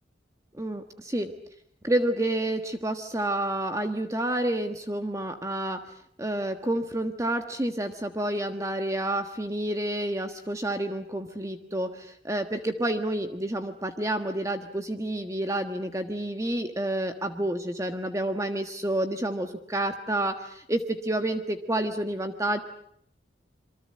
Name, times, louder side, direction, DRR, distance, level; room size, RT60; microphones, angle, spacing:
voice 1, 0.5-1.3 1.8-5.8 6.2-22.6, right 1 dB, 15° right, 6 dB, 1.4 m, -29 dB
27.5 x 23.5 x 7.5 m, 0.65 s
head